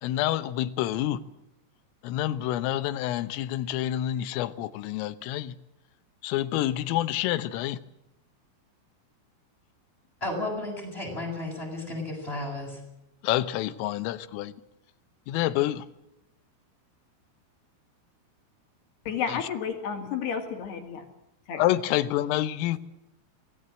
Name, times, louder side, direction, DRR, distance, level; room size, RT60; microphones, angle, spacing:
voice 1, 0.0-1.2 2.0-5.6 6.2-7.8 13.2-14.5 15.3-15.9 19.3-19.4 21.5-22.8, left 13 dB, 85° left, 13 dB, 3.6 m, -28 dB
voice 2, 10.2-12.8, left 2 dB, 10° left, 0 dB, 7.5 m, -33 dB
voice 3, 19.1-21.0 21.5-21.6, left 7 dB, 60° left, 5 dB, 4.1 m, -31 dB
25.0 x 18.5 x 7.6 m, 0.86 s
omnidirectional pair, 5.8 m